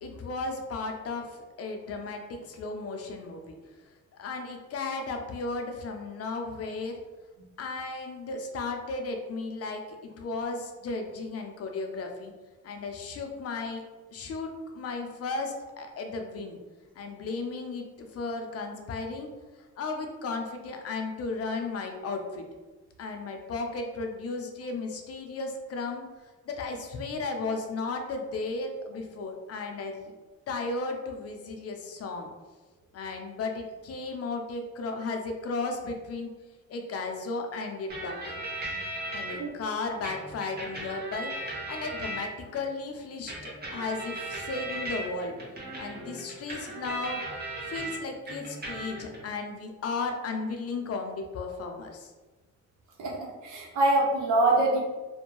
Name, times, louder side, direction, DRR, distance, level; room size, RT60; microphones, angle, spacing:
voice 1, 0.0-3.5 4.2-7.0 7.6-12.3 12.6-13.8 14.1-16.6 17.0-19.3 19.6-22.4 23.0-30.1 30.5-32.3 32.9-36.3 36.7-38.3 39.1-45.3 45.8-47.2 47.7-52.1, left 3 dB, 50° left, 3 dB, 0.5 m, -35 dB
sound 1, 37.9-39.3 40.0-42.6 43.3-48.0 48.3-49.2, right 1 dB, 35° right, 0.9 m, -37 dB
voice 2, 53.0-54.8, right 2 dB, 80° right, -2 dB, 0.8 m, -24 dB
2.5 x 2.1 x 3.0 m, 1.3 s
cardioid pair, 90°, 30 cm